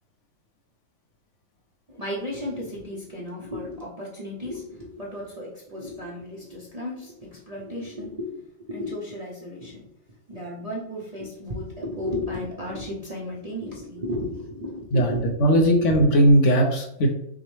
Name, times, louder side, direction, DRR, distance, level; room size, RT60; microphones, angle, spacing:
voice 1, 1.9-8.4 8.7-9.8 10.3-16.1, left 1 dB, 40° right, -5 dB, 0.5 m, -34 dB
voice 2, 15.4-17.1, right 1 dB, 65° left, 2 dB, 0.9 m, -18 dB
6.0 x 2.1 x 3.1 m, 0.75 s
omnidirectional pair, 1.5 m